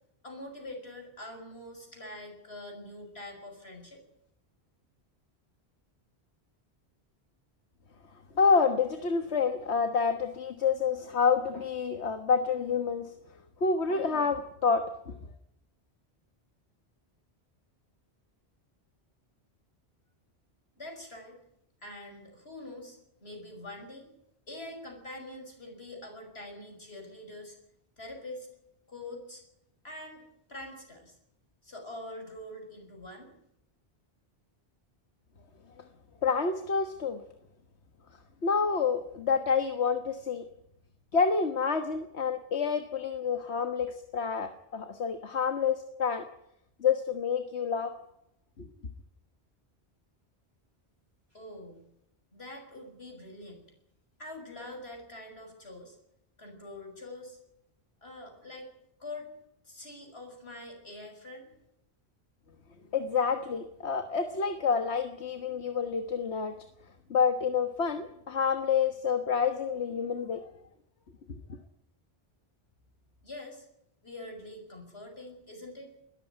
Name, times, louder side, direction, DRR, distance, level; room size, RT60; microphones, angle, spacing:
voice 1, 0.2-4.0 20.8-21.4 21.8-24.1 24.5-27.6 28.0-28.5 28.9-29.4 29.8-30.2 30.5-31.2 31.6-33.3 51.3-51.8 52.3-53.6 54.2-56.0 56.4-57.4 58.0-58.7 59.0-59.3 59.6-61.5 73.2-73.7 74.0-75.9, left 1 dB, 70° left, 3 dB, 6.6 m, -44 dB
voice 2, 8.4-13.1 13.6-15.2 36.2-37.2 38.4-40.4 41.1-46.3 46.8-47.9 48.6-48.7 62.9-66.6 67.1-70.5 71.3-71.4, left 5 dB, 90° left, 7 dB, 1.7 m, -28 dB
21.0 x 14.0 x 9.3 m, 0.79 s
omnidirectional pair, 1.1 m